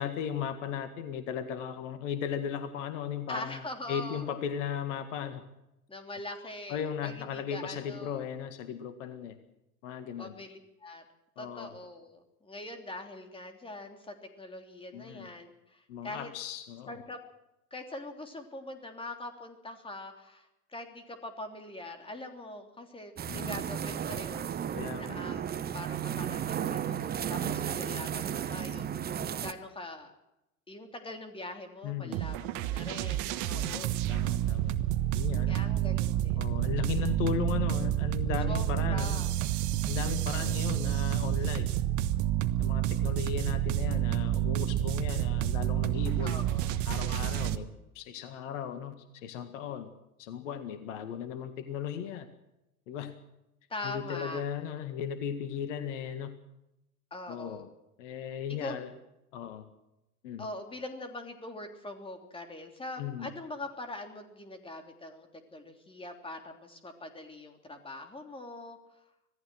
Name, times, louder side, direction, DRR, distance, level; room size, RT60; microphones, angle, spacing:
voice 1, 0.0-3.6 3.9-5.4 6.7-9.4 9.8-10.3 11.4-11.7 14.9-15.3 15.9-17.0 23.3-23.6 24.7-25.2 27.4-27.6 31.8-32.2 33.5-34.8 35.1-35.6 36.4-39.2 39.9-41.7 42.6-46.4 46.9-47.7 47.9-49.9 50.2-52.3 52.9-53.1 53.8-56.3 57.3-57.7 58.0-58.9 59.3-59.7 60.2-60.5 63.0-63.3, left 9 dB, 55° left, 10 dB, 1.9 m, -36 dB
voice 2, 3.3-4.2 5.9-8.2 10.2-11.0 11.4-16.3 16.9-17.2 17.7-25.4 25.7-28.9 29.4-30.1 30.7-34.3 35.5-36.6 38.5-39.3 40.4-41.0 46.2-46.8 53.7-54.4 57.1-57.7 58.5-58.8 60.4-68.8, left 2 dB, 10° left, 5 dB, 3.3 m, -43 dB
sound 1, 23.2-29.5, right 9 dB, 20° right, 1.1 m, -34 dB
sound 2, 32.1-47.6, right 13 dB, 40° right, 1.3 m, -29 dB
26.0 x 17.5 x 6.3 m, 0.89 s
figure-of-eight pair, 80°, 45 cm